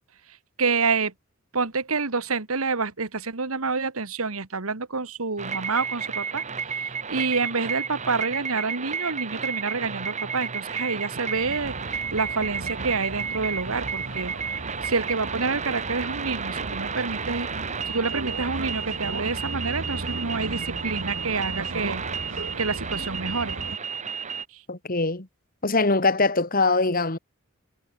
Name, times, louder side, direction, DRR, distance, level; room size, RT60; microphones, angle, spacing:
voice 1, 0.6-1.1 1.5-22.0 22.6-23.6 24.5-24.6, right 4 dB, 85° right, 1.8 m, -28 dB
sound 1, 5.4-24.4, right 6 dB, 35° right, 2.4 m, -32 dB
sound 2, 11.3-23.8, right 2 dB, 60° right, 1.7 m, -36 dB
voice 2, 24.7-25.3 25.6-27.2, left 3 dB, 40° left, 2.1 m, -22 dB
head